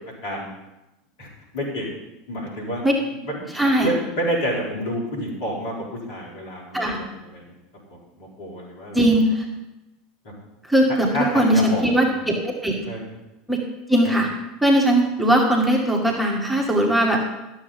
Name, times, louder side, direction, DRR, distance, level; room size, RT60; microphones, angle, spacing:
voice 1, 1.5-2.0 2.3-2.8 3.3-3.4 3.8-7.5 7.9-9.0 10.2-10.3 11.1-12.1 12.9-13.0 14.0-14.2, equal, 60° left, -2 dB, 3.9 m, -29 dB
voice 2, 3.5-3.9 6.7-7.0 8.9-9.5 10.7-12.9 13.5-13.6 13.9-14.3 14.6-17.2, right 1 dB, 5° right, 0 dB, 2.1 m, -19 dB
12.5 x 7.2 x 5.6 m, 0.98 s
figure-of-eight pair, 75°, 0 cm